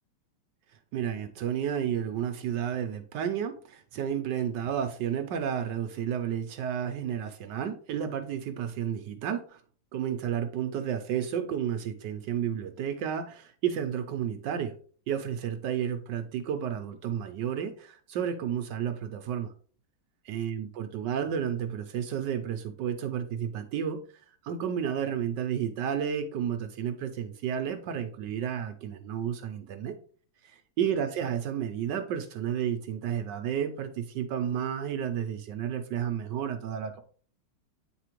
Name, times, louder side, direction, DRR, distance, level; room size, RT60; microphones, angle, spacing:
voice 1, 0.9-9.6 9.9-14.7 15.1-19.5 20.3-24.0 24.4-30.0 30.4-37.0, right 9 dB, 75° right, 7 dB, 1.0 m, -31 dB
8.8 x 4.2 x 3.0 m, 0.43 s
omnidirectional pair, 2.4 m